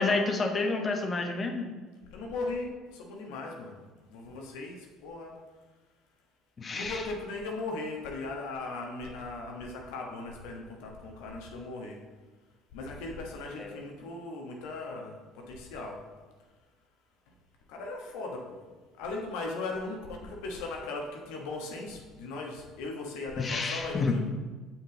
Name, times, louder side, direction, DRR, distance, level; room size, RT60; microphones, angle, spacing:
voice 1, 0.0-1.7 6.6-7.0 13.6-13.7 23.4-24.2, left 3 dB, 35° left, 4 dB, 1.1 m, -29 dB
voice 2, 2.1-3.8 4.1-5.4 6.7-12.0 12.7-16.0 17.7-18.6 19.0-24.3, left 3 dB, 70° left, 1 dB, 1.2 m, -38 dB
7.3 x 6.0 x 3.8 m, 1.3 s
hypercardioid pair, 60°, 0 cm